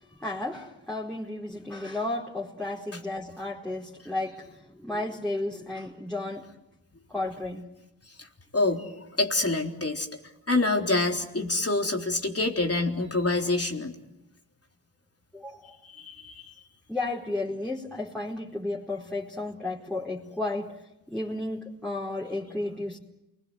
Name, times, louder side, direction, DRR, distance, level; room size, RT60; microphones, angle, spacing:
voice 1, 0.0-6.5 7.1-7.7 15.3-15.7 16.9-20.7 21.1-23.0, left 2 dB, ahead, -6 dB, 4.6 m, -33 dB
voice 2, 8.5-10.1 10.5-13.9 15.8-16.5, left 2 dB, 35° left, 3 dB, 3.8 m, -26 dB
28.5 x 21.0 x 7.9 m, 0.90 s
cardioid pair, 55°, 40 cm